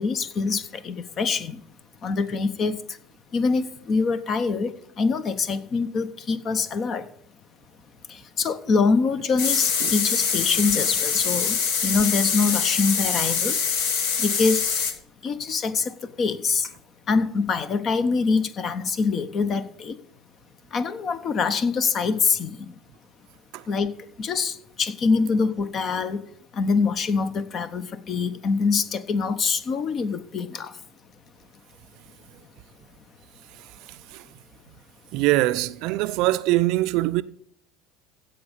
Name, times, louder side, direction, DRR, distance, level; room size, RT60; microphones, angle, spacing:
voice 1, 0.0-1.6 2.0-3.0 3.3-7.1 8.1-13.6 14.2-14.6 15.2-16.7 17.1-20.0 20.7-22.8 23.7-26.2 26.5-30.8, left 4 dB, 40° left, 1.0 m, -25 dB
sound 1, 9.4-14.9, left 6 dB, 60° left, 1.5 m, -24 dB
voice 2, 33.5-34.3 35.1-37.2, right 18 dB, 60° right, 0.5 m, -24 dB
16.0 x 5.3 x 7.3 m
figure-of-eight pair, 65°, 0 cm